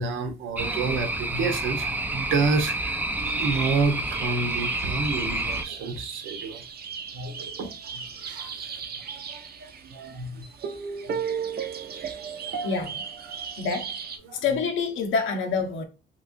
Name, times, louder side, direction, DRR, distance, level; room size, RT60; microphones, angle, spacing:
voice 1, 0.0-3.0 3.4-6.9 7.1-8.6 9.1-10.7 11.0-11.2 11.6-12.6 14.3-14.4, right 4 dB, 80° right, 0.9 m, -30 dB
sound 1, 0.6-5.6, right 2 dB, 10° right, 0.4 m, -29 dB
sound 2, 3.2-14.2, right 6 dB, 50° right, 0.6 m, -36 dB
voice 2, 12.6-13.0 13.6-13.9 14.3-15.8, left 5 dB, 80° left, 0.8 m, -27 dB
3.1 x 3.0 x 2.5 m
cardioid pair, 90°, 20 cm